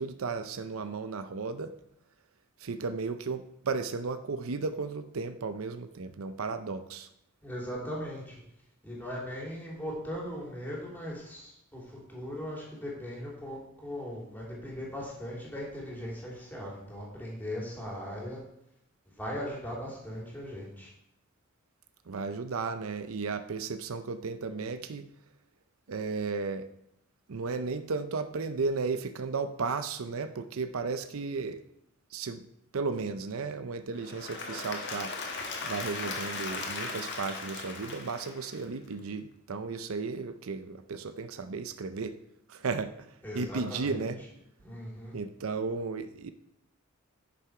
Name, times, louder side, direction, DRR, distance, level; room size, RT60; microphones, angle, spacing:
voice 1, 0.0-1.8 2.6-7.1 22.1-25.1 25.9-26.7 27.3-31.6 32.1-32.4 32.7-35.1 35.6-42.2 42.5-43.1 43.3-44.2 45.1-46.3, right 4 dB, 75° right, 10 dB, 0.6 m, -34 dB
voice 2, 7.4-8.4 8.8-18.4 19.2-20.9 43.2-44.1 44.6-45.1, equal, 10° left, -4 dB, 3.3 m, -39 dB
Applause / Crowd, 33.9-38.9, left 3 dB, 55° left, 1.6 m, -38 dB
10.5 x 6.8 x 4.8 m, 0.79 s
head